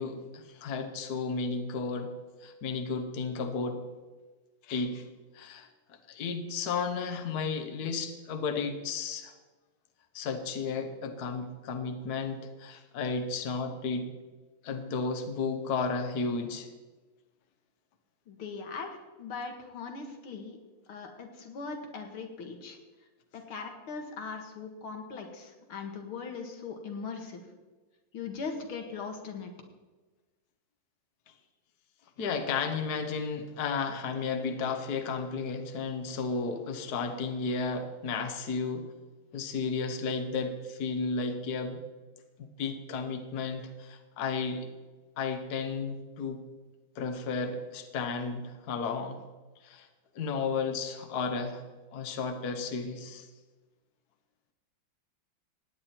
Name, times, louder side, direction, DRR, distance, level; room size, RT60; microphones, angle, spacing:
voice 1, 0.0-2.1 2.4-3.8 4.6-5.1 5.3-9.3 10.1-14.1 14.6-16.7 32.2-38.9 39.3-41.8 42.4-44.7 45.2-46.4 46.9-49.2 49.6-49.9 50.1-51.6 51.9-53.3, left 4 dB, 55° left, 6 dB, 1.5 m, -33 dB
voice 2, 18.3-20.6 20.9-22.8 23.3-27.5 28.1-29.5, left 5 dB, 85° left, 4 dB, 2.4 m, -40 dB
16.5 x 9.8 x 4.4 m, 1.2 s
omnidirectional pair, 2.3 m